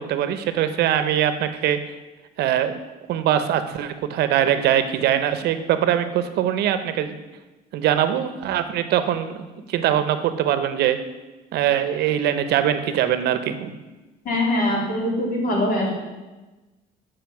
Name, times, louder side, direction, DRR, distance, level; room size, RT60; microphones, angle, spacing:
voice 1, 0.0-1.8 2.4-2.8 3.1-7.2 7.7-9.4 9.7-11.0 11.5-13.7, right 10 dB, 75° right, 10 dB, 0.7 m, -22 dB
voice 2, 14.2-15.9, left 1 dB, 55° left, -1 dB, 2.5 m, -22 dB
7.6 x 5.0 x 5.8 m, 1.1 s
cardioid pair, 110°, 17 cm